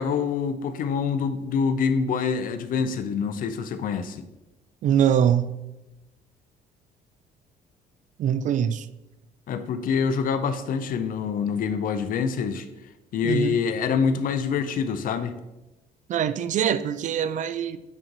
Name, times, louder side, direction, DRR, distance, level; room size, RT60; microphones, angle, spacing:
voice 1, 0.0-4.2 9.5-12.7 13.1-15.3, left 6 dB, 55° left, 0.6 m, -26 dB
voice 2, 4.8-5.6 8.2-8.9 13.2-13.6 16.1-17.8, right 9 dB, 50° right, 0.4 m, -23 dB
8.8 x 3.0 x 3.9 m
cardioid pair, 110°, 17 cm